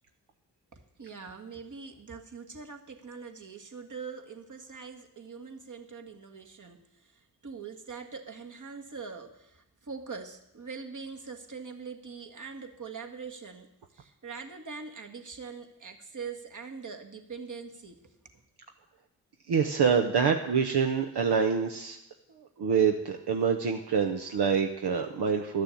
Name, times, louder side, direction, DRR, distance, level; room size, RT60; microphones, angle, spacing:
voice 1, 0.7-18.4, right 5 dB, 50° right, 4 dB, 1.7 m, -43 dB
voice 2, 19.5-22.0 22.3-25.6, right 6 dB, 75° right, 4 dB, 0.9 m, -26 dB
11.5 x 6.7 x 8.4 m, 0.85 s
cardioid pair, 45°, 40 cm